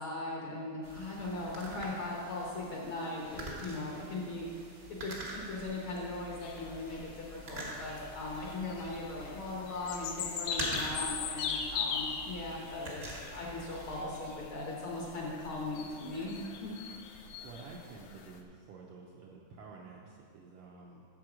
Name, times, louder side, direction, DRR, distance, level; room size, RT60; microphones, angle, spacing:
voice 1, 0.0-4.5 4.9-16.7, left 2 dB, 60° left, -3 dB, 1.5 m, -39 dB
sound 1, 0.8-14.0, right 1 dB, 50° right, 0.7 m, -45 dB
sound 2, 6.4-18.4, left 6 dB, 75° left, 1.6 m, -41 dB
voice 2, 17.4-21.0, right 4 dB, 75° right, -2 dB, 1.5 m, -50 dB
9.2 x 6.8 x 5.0 m, 2.2 s
omnidirectional pair, 3.4 m